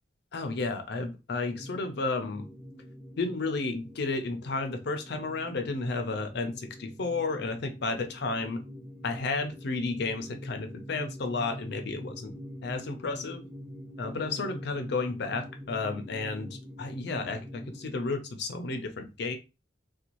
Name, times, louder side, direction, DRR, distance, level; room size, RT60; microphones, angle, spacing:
voice 1, 0.3-2.5 3.2-8.6 9.0-12.4 12.6-13.4 14.0-19.4, left 3 dB, 60° left, 0.5 m, -32 dB
sound 1, 1.4-18.0, equal, 20° right, 1.3 m, -45 dB
2.6 x 2.2 x 2.9 m
head